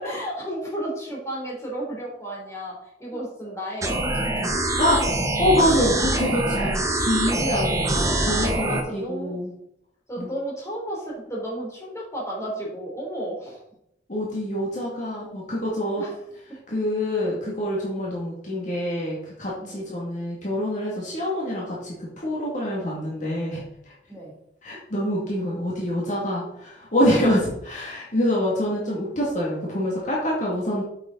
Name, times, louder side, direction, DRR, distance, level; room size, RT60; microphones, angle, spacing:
voice 1, 0.0-2.7 3.0-4.3 8.6-9.4 10.1-13.6 16.0-16.2 19.6-19.8 24.1-24.3 27.0-27.3, right 1 dB, 15° left, -3 dB, 3.6 m, -33 dB
sound 1, 3.8-8.8, right 1 dB, 20° right, 1.2 m, -24 dB
voice 2, 5.4-9.5 10.2-10.3 14.1-16.0 16.7-23.6 24.6-30.8, left 1 dB, 45° left, -5 dB, 2.4 m, -25 dB
8.7 x 7.3 x 4.1 m, 0.78 s
head